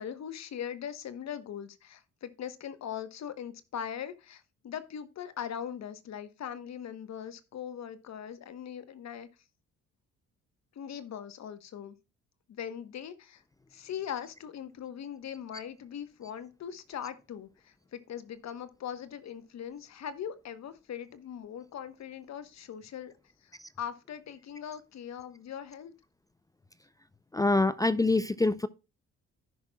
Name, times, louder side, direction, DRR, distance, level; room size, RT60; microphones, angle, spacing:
voice 1, 0.0-9.3 10.7-11.9 12.5-13.4 13.7-23.1 23.4-25.9, left 9 dB, 60° left, 1.1 m, -40 dB
voice 2, 27.3-28.7, left 2 dB, 10° left, 0.4 m, -25 dB
15.0 x 6.0 x 2.2 m
cardioid pair, 90°, 30 cm